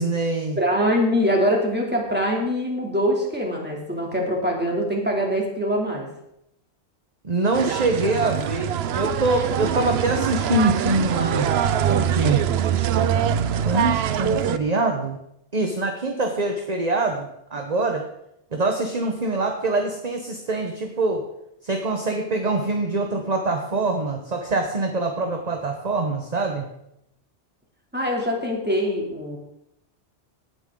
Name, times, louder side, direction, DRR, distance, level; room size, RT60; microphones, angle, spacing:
voice 1, 0.0-0.6 7.2-11.5 11.9-12.4 13.6-15.2 15.5-18.1 18.5-21.3 21.6-26.7, right 2 dB, 40° right, 3 dB, 1.2 m, -24 dB
voice 2, 0.6-6.1 27.9-29.4, equal, 10° right, -1 dB, 2.8 m, -23 dB
sound 1, 7.5-14.6, right 9 dB, 70° right, 0.9 m, -23 dB
17.5 x 9.4 x 3.8 m, 0.80 s
omnidirectional pair, 1.1 m